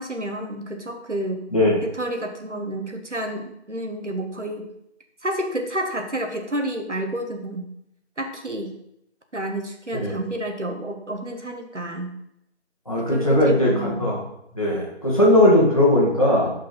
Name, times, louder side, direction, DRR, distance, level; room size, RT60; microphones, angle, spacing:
voice 1, 0.0-1.4 1.8-4.7 5.2-7.6 8.2-8.7 9.3-12.1 13.0-14.0, right 1 dB, 80° right, 4 dB, 1.8 m, -30 dB
voice 2, 12.9-14.2 14.5-16.5, left 1 dB, 30° left, -5 dB, 2.2 m, -18 dB
13.0 x 5.2 x 4.1 m, 0.79 s
figure-of-eight pair, 175°, 35 cm